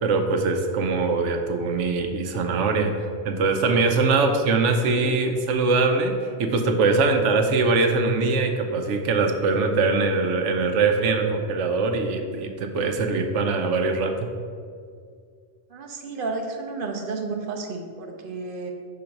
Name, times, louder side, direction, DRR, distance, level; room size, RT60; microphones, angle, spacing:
voice 1, 0.0-2.9 3.2-14.3, right 3 dB, 85° right, 5 dB, 1.0 m, -22 dB
voice 2, 15.7-18.7, right 3 dB, 55° right, 3 dB, 0.8 m, -32 dB
5.2 x 3.8 x 5.8 m, 2.2 s
omnidirectional pair, 1.2 m